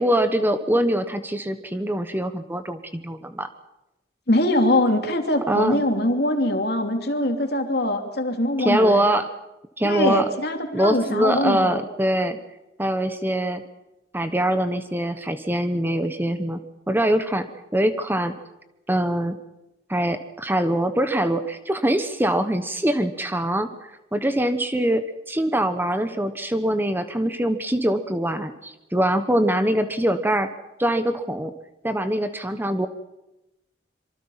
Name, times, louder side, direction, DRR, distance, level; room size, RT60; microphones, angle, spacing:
voice 1, 0.0-3.5 5.5-5.9 8.6-9.2 9.8-10.3 10.7-12.4 12.8-13.6 14.1-16.6 16.9-17.5 17.7-18.3 18.9-19.4 19.9-23.7 24.1-30.5 30.8-31.5 31.8-32.9, right 1 dB, 10° right, 9 dB, 1.2 m, -23 dB
voice 2, 4.3-9.2 9.8-11.8, left 1 dB, 65° left, 4 dB, 3.0 m, -22 dB
25.5 x 24.0 x 5.8 m, 0.93 s
head